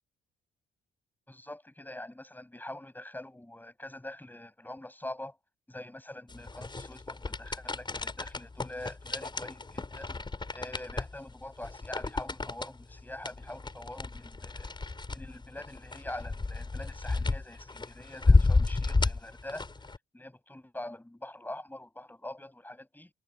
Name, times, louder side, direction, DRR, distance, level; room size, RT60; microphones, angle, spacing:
voice 1, 1.3-5.4 5.7-10.2 10.5-14.7 15.1-19.7 20.1-23.1, left 1 dB, 10° left, 7.3 m, -44 dB
sound 1, 6.3-20.0, left 3 dB, 25° left, 5.2 m, -31 dB
hypercardioid pair, 55°, 19 cm